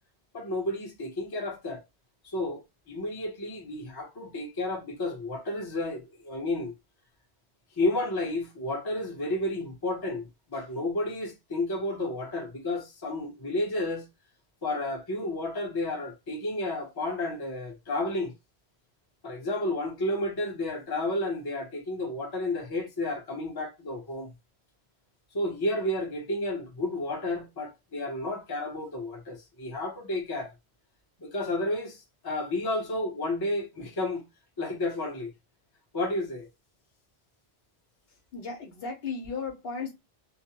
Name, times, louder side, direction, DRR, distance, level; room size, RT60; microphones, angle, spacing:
voice 1, 0.3-1.8 2.2-6.7 7.8-14.1 14.6-18.3 19.2-24.3 25.3-30.5 31.2-34.2 34.6-35.3 35.9-36.5, left 2 dB, 25° left, 0.6 m, -31 dB
voice 2, 38.1-39.9, left 4 dB, 65° left, 0.9 m, -36 dB
2.4 x 2.0 x 2.7 m
omnidirectional pair, 1.1 m